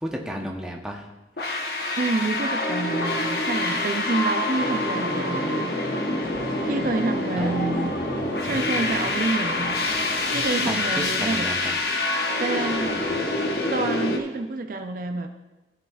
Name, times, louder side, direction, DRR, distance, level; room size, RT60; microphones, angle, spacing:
voice 1, 0.0-1.1 7.4-7.7 10.7-10.8 11.2-11.8, equal, 5° right, 0 dB, 0.8 m, -33 dB
sound 1, 1.4-14.2, left 2 dB, 65° left, 1.0 m, -26 dB
voice 2, 2.0-5.8 6.6-7.9 8.4-11.5 12.4-13.0 13.7-15.3, right 3 dB, 50° right, 6 dB, 0.5 m, -28 dB
Napoli Molo Beverello hydrofoil workers and passengers, 6.2-11.2, equal, 50° left, 1.5 m, -39 dB
sound 2, 7.5-9.2 10.2-11.9 12.7-13.2, equal, 20° left, 1.3 m, -44 dB
14.0 x 7.3 x 2.4 m, 1.1 s
head